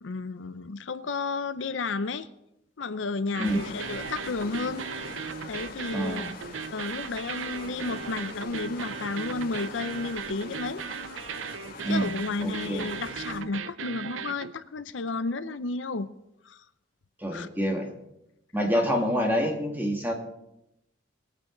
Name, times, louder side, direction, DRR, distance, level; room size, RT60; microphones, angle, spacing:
voice 1, 0.0-2.3 2.8-4.9 5.5-6.3 6.7-10.8 11.9-16.1 16.4-16.6 17.3-17.5 18.7-18.8, left 3 dB, 75° left, 13 dB, 0.6 m, -32 dB
sound 1, 3.3-14.5, right 7 dB, 85° right, 0.5 m, -37 dB
sound 2, 3.4-13.4, left 3 dB, 50° left, 2.1 m, -43 dB
voice 2, 5.9-6.3 11.8-12.1 12.4-12.9 17.2-17.9 18.5-20.1, equal, 10° right, 1 dB, 2.0 m, -27 dB
22.0 x 9.0 x 3.9 m, 0.85 s
head